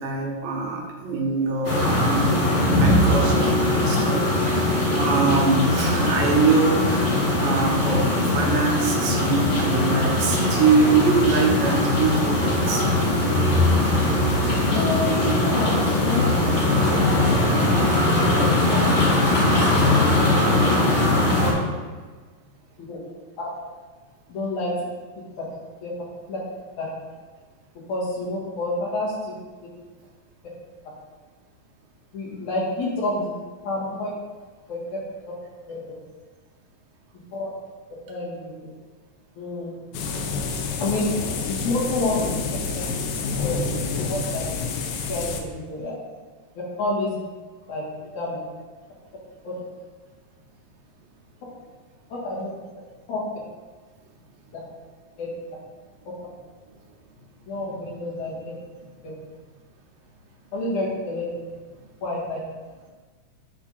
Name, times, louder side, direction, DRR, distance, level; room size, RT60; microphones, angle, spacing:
voice 1, 0.0-2.4 2.8-13.5, right 4 dB, 80° right, -1 dB, 2.6 m, -24 dB
sound 1, 1.6-21.5, left 1 dB, 35° left, 1.2 m, -20 dB
voice 2, 14.7-16.6 17.0-17.3 18.4-18.5 20.2-20.8 22.9-23.0 23.4-23.5 24.3-24.7 25.8-25.9 26.3-26.4 26.8-26.9 27.9-29.3 32.1-33.3 33.6-34.1 34.7-35.0 35.7-35.8 37.3-37.5 38.1-38.5 39.4-39.8 40.8-41.0 41.6-42.4 43.4-44.4 45.1-45.9 46.8-47.1 47.7-47.8 48.1-48.4 49.4-49.6 52.2-52.5 53.1-53.2 55.2-55.3 57.5-58.3 59.0-59.1 60.5-61.2 62.0-62.4, left 2 dB, 65° left, -6 dB, 3.1 m, -28 dB
sound 2, 39.9-45.4, left 4 dB, 80° left, 2.3 m, -28 dB
10.0 x 3.7 x 4.1 m, 1.4 s
omnidirectional pair, 3.9 m